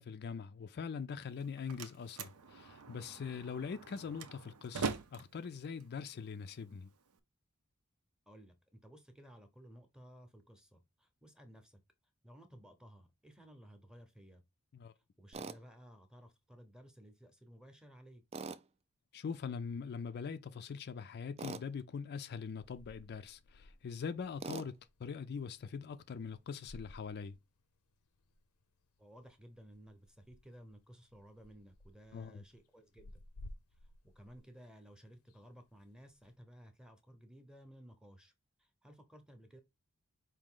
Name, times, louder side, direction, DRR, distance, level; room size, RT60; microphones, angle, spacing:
voice 1, 0.0-6.9 14.7-14.9 19.1-27.4 32.1-32.4, left 6 dB, 45° left, 0.4 m, -42 dB
Slam, 1.2-7.2, right 4 dB, 80° right, 0.6 m, -44 dB
voice 2, 8.3-11.8 12.2-14.4 15.2-18.2 29.0-33.2 34.1-38.3 38.6-39.6, equal, 5° right, 0.8 m, -57 dB
Tools, 15.3-15.6 18.3-18.6 21.4-21.7 24.4-24.7, right 4 dB, 30° right, 0.3 m, -42 dB
sound 1, 22.6-36.3, left 1 dB, 85° left, 0.6 m, -58 dB
4.9 x 2.7 x 3.7 m
head